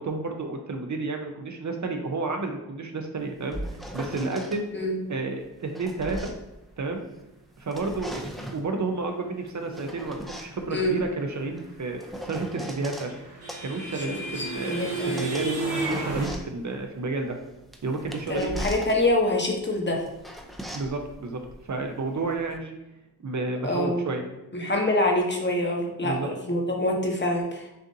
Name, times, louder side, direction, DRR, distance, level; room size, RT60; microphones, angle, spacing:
voice 1, 0.0-3.6 3.9-4.7 5.1-6.3 6.8-7.0 7.6-13.1 13.6-17.4 17.8-18.6 20.7-21.4 21.7-22.7 23.2-24.2 26.0-26.3, right 3 dB, 50° right, 4 dB, 0.6 m, -31 dB
sound 1, 3.2-4.6 5.4-7.2 7.6-8.7 9.5-13.1 13.5-22.6, equal, ahead, 0.5 m, -40 dB
sound 2, 12.4-16.3, right 3 dB, 70° right, 1.3 m, -32 dB
voice 2, 14.4-15.1 18.3-20.0 23.6-24.1 24.5-27.7, left 1 dB, 30° left, 0 dB, 1.0 m, -25 dB
6.5 x 2.5 x 2.7 m, 0.95 s
cardioid pair, 50°, 38 cm